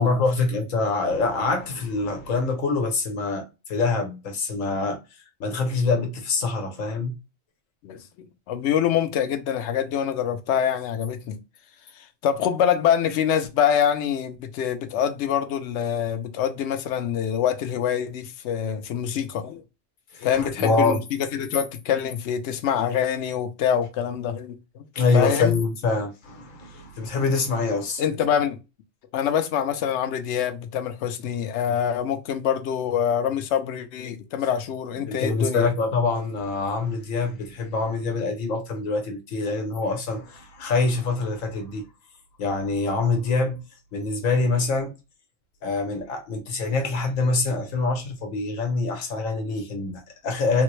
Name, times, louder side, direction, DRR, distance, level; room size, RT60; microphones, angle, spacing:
voice 1, 0.0-5.0 5.4-7.1 20.1-21.0 24.9-28.0 35.0-41.9 42.4-43.6 43.9-44.9 45.6-50.6, left 3 dB, 85° left, 1.3 m, -25 dB
voice 2, 8.5-11.4 12.0-19.6 20.2-24.8 25.1-25.5 28.0-28.6 29.1-35.7, left 9 dB, 70° left, 0.8 m, -25 dB
3.5 x 2.1 x 3.0 m
omnidirectional pair, 1.3 m